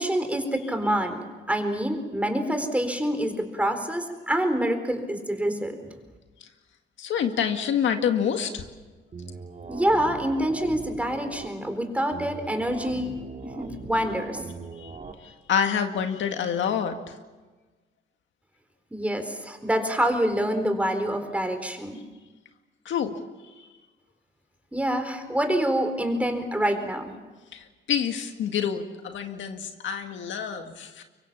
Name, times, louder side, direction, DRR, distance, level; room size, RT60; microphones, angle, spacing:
voice 1, 0.0-6.0 9.7-13.1 13.4-14.4 18.9-22.0 24.7-27.1, right 1 dB, 5° right, 6 dB, 4.1 m, -26 dB
voice 2, 7.0-8.6 14.8-15.0 15.2-17.1 22.9-23.1 27.5-31.0, left 8 dB, 70° left, 6 dB, 2.0 m, -27 dB
sound 1, 9.1-11.5 12.1-15.1, right 4 dB, 40° right, 2.7 m, -40 dB
24.0 x 24.0 x 7.3 m, 1.3 s
cardioid pair, 90°, 20 cm